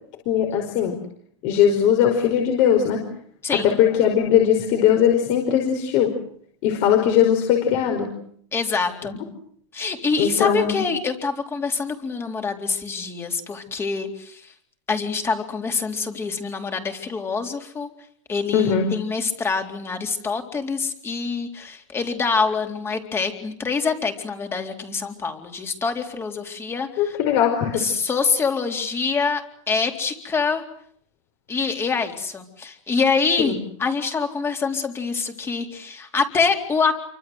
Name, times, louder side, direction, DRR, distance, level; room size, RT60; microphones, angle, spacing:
voice 1, 0.3-1.0 1.4-3.0 3.5-6.1 6.6-8.1 10.2-10.8 18.5-18.9 27.0-27.8 33.4-33.6, left 9 dB, 45° left, 3 dB, 5.3 m, -19 dB
voice 2, 3.4-3.8 8.5-9.1 9.7-14.5 14.9-17.9 18.3-27.2 27.8-30.6 31.5-33.5 33.8-36.9, left 5 dB, 15° left, 5 dB, 3.9 m, -25 dB
28.5 x 25.0 x 8.0 m, 0.65 s
supercardioid pair, 155°, 16 cm